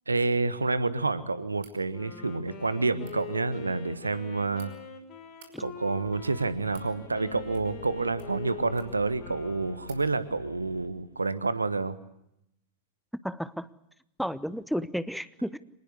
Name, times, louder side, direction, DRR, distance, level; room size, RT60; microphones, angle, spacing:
voice 1, 0.1-4.7 5.6-12.0, right 3 dB, 80° right, 14 dB, 1.5 m, -29 dB
sound 1, 1.5-1.8 2.9-3.2 4.1-4.7 5.3-5.5 6.3-6.9 7.5-7.9 8.1-9.1 9.4-9.5 9.8-10.0, right 7 dB, 55° right, 5.3 m, -56 dB
Wind instrument woodwind instrument, 1.9-10.2, left 7 dB, 40° left, 4.4 m, -45 dB
sound 2, 6.0-11.2, left 3 dB, 80° left, 1.7 m, -48 dB
voice 2, 13.2-13.7 14.2-15.6, equal, ahead, 16 dB, 0.9 m, -32 dB
26.0 x 19.5 x 8.2 m, 0.80 s
figure-of-eight pair, 90°, 0 cm